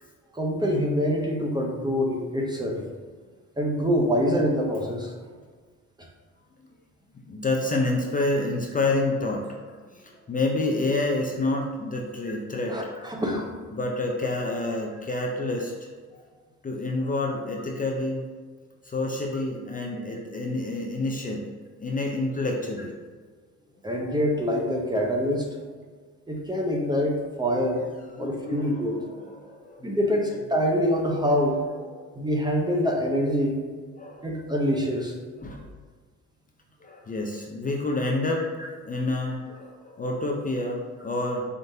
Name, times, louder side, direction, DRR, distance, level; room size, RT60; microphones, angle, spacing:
voice 1, 0.3-2.8 3.6-5.1 12.7-13.5 23.8-25.5 26.3-27.9 28.2-29.0 29.8-31.6 32.1-33.6 34.2-35.1, equal, 15° right, 0 dB, 0.7 m, -25 dB
voice 2, 7.3-12.9 13.7-16.2 16.6-18.2 18.8-21.5 21.8-22.9 28.1-30.2 31.3-31.4 31.9-32.1 33.9-34.3 35.4-35.7 36.8-41.5, left 2 dB, 25° left, 0 dB, 0.6 m, -29 dB
4.4 x 3.7 x 2.7 m, 1.5 s
cardioid pair, 90°, 30 cm